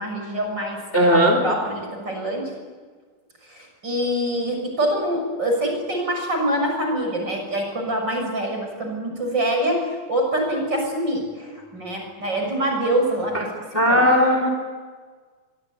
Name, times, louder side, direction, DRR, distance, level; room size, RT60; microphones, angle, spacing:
voice 1, 0.0-0.8 1.4-2.5 3.5-13.4 13.7-14.0, right 1 dB, 30° right, 2 dB, 7.2 m, -25 dB
voice 2, 0.9-1.4 13.3-13.4 13.7-14.5, equal, 20° left, 3 dB, 3.6 m, -17 dB
25.5 x 23.0 x 9.4 m, 1.5 s
omnidirectional pair, 4.1 m